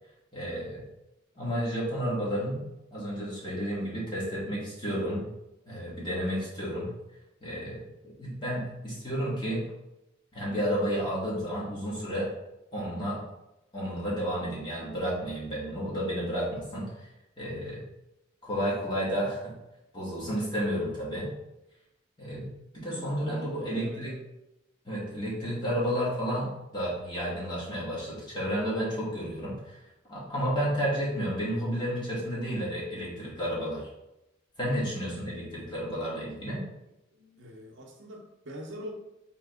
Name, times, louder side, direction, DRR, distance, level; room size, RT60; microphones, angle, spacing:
voice 1, 0.3-0.8 1.3-5.3 5.7-6.9 7.4-9.6 10.3-12.3 12.7-13.2 13.7-17.1 17.4-17.8 18.4-19.5 19.9-21.3 22.2-24.2 24.8-29.8 30.1-33.9 34.6-36.6, equal, 25° left, -7 dB, 1.4 m, -31 dB
voice 2, 22.8-24.2 37.1-38.9, equal, 65° right, -1 dB, 0.7 m, -44 dB
3.6 x 2.9 x 3.5 m, 0.92 s
head